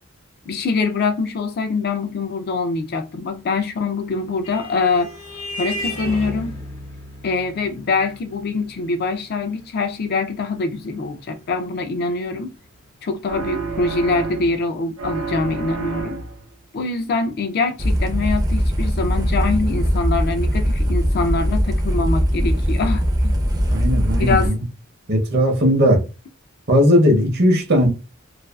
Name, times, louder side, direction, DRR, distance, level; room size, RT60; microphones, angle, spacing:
voice 1, 0.5-5.1 5.6-6.5 7.2-12.5 13.0-16.2 16.7-23.3 24.1-24.5, left 3 dB, 45° left, 0.4 m, -24 dB
Vehicle horn car horn honking, 3.8-12.8, left 1 dB, 75° left, 0.9 m, -35 dB
sound 1, 13.3-14.7 15.0-16.5, right 4 dB, 90° right, 0.6 m, -29 dB
sound 2, 17.8-24.5, equal, 15° right, 0.5 m, -20 dB
voice 2, 23.7-24.5 25.1-26.0 26.7-27.9, equal, 50° right, 0.7 m, -17 dB
2.4 x 2.3 x 2.2 m
head